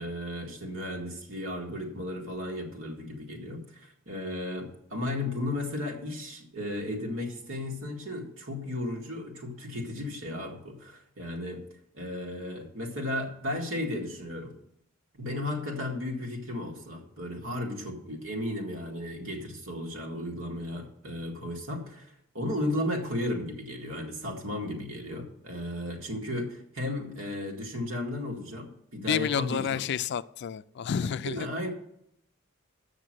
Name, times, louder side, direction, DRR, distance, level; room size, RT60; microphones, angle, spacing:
voice 1, 0.0-11.6 11.9-14.5 15.1-29.8 31.2-31.7, left 1 dB, 75° right, 1 dB, 2.0 m, -34 dB
voice 2, 29.1-31.5, left 8 dB, 55° left, 15 dB, 0.3 m, -30 dB
7.6 x 6.4 x 7.6 m, 0.74 s
head